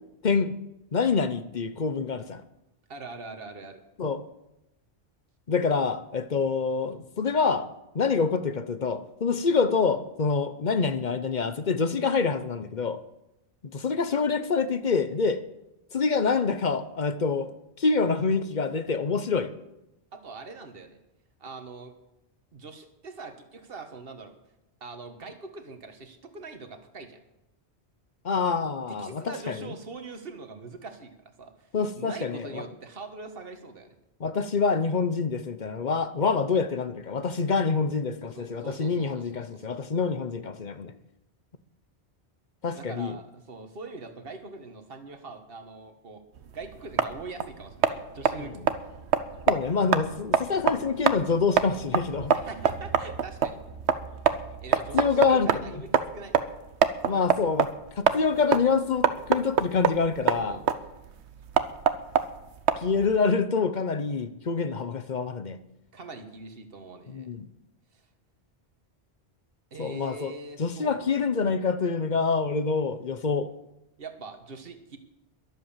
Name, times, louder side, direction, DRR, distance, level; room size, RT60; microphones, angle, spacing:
voice 1, 0.2-0.6 0.9-2.4 4.0-4.2 5.5-7.7 7.9-13.0 13.6-15.4 15.9-17.5 17.8-19.5 28.2-29.7 31.7-32.6 34.2-40.9 42.6-43.2 48.5-48.6 49.5-52.3 54.9-55.5 57.1-57.7 58.0-60.6 62.8-65.6 67.1-67.5 69.8-70.3 70.6-73.5, left 5 dB, 45° left, 12 dB, 0.9 m, -26 dB
voice 2, 2.9-3.8 20.1-21.0 21.4-21.9 22.5-24.3 24.8-27.2 29.0-31.7 31.9-33.9 38.3-39.7 42.7-46.2 46.5-48.6 52.3-53.6 53.9-54.0 54.6-55.9 56.1-56.3 57.1-57.2 60.3-60.6 65.9-67.3 67.9-68.0 69.7-71.0 74.0-75.0, right 3 dB, 60° right, 7 dB, 1.7 m, -42 dB
sound 1, 46.4-63.2, right 7 dB, 80° right, 1.2 m, -27 dB
22.0 x 7.9 x 7.3 m, 0.91 s
omnidirectional pair, 1.1 m